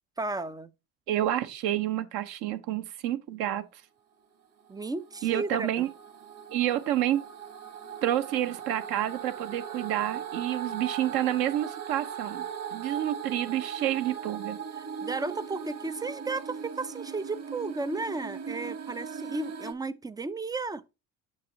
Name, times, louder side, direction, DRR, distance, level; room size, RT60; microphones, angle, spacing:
voice 1, 0.2-0.7 4.7-5.8 14.8-20.8, right 3 dB, 10° right, 0.3 m, -34 dB
voice 2, 1.1-3.8 5.2-5.9 6.5-7.2 8.0-12.4 12.7-14.6, right 12 dB, 60° right, 0.9 m, -29 dB
sound 1, 4.6-19.7, right 7 dB, 40° right, 1.4 m, -39 dB
7.4 x 5.6 x 2.8 m
hypercardioid pair, 65°, 42 cm